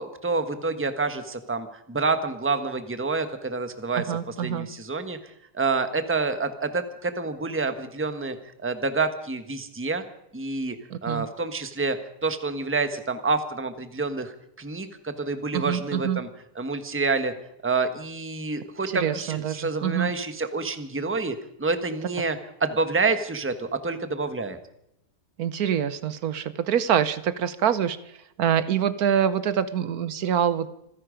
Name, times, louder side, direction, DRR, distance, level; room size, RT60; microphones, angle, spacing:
voice 1, 0.0-5.2 5.5-10.0 10.3-10.8 11.0-12.0 12.2-16.3 16.5-17.3 17.6-21.3 21.6-24.6, right 3 dB, 10° right, 9 dB, 1.1 m, -28 dB
voice 2, 4.0-4.7 10.9-11.3 15.5-16.2 18.9-20.1 25.4-30.7, right 9 dB, 75° right, 14 dB, 1.3 m, -25 dB
27.0 x 10.5 x 5.1 m, 0.77 s
omnidirectional pair, 1.6 m